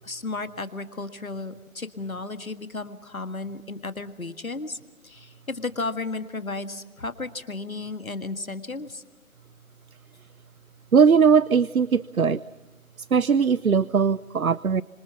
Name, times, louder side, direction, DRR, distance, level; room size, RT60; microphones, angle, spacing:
voice 1, 0.0-4.8 5.0-9.0, left 3 dB, 75° left, 10 dB, 1.8 m, -34 dB
voice 2, 10.9-12.4 13.0-14.8, right 6 dB, 80° right, 20 dB, 0.7 m, -20 dB
26.0 x 26.0 x 5.9 m, 1.2 s
figure-of-eight pair, 160°, 42 cm